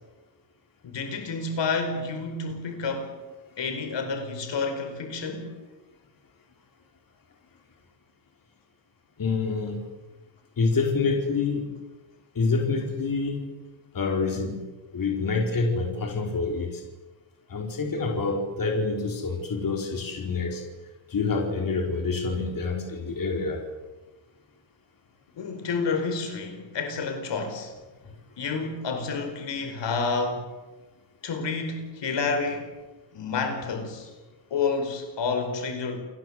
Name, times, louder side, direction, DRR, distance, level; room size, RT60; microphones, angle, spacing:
voice 1, 0.8-3.1 3.6-5.5 25.4-27.7 28.4-30.4 31.2-32.7 33.1-34.1 34.5-36.0, left 4 dB, 65° left, 6 dB, 5.0 m, -29 dB
voice 2, 9.2-9.8 10.6-11.7 12.3-13.5 13.9-14.6 14.9-16.8 17.5-20.6 21.1-23.6, left 4 dB, 45° left, 2 dB, 4.9 m, -27 dB
29.5 x 21.0 x 8.2 m, 1.2 s
wide cardioid pair, 160°, 47 cm